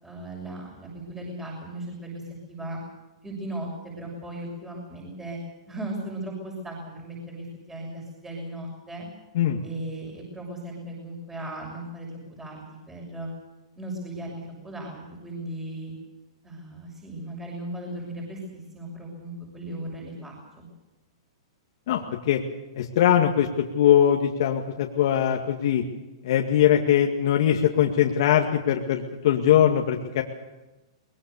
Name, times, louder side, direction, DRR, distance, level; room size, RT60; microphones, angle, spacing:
voice 1, 0.0-2.8 3.2-5.4 5.7-9.1 9.6-13.3 13.8-15.9 16.4-20.7, right 1 dB, 10° right, -1 dB, 6.6 m, -37 dB
voice 2, 21.9-22.4 22.8-23.5 23.7-25.8 26.2-30.2, left 10 dB, 60° left, 1 dB, 2.0 m, -21 dB
23.0 x 21.5 x 7.0 m, 1.1 s
hypercardioid pair, 130°, 3 cm